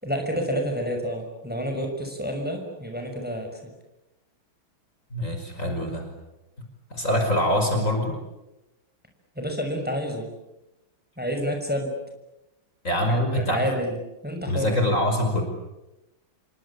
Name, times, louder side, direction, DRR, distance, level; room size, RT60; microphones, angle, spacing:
voice 1, 0.0-3.6 9.4-10.3 11.2-12.0 13.1-14.0 14.2-14.7, equal, 5° right, 3 dB, 6.0 m, -29 dB
voice 2, 5.1-6.1 6.9-8.2 12.8-13.6 14.5-15.4, left 1 dB, 35° left, 3 dB, 5.8 m, -24 dB
28.5 x 24.0 x 8.6 m, 0.97 s
omnidirectional pair, 2.3 m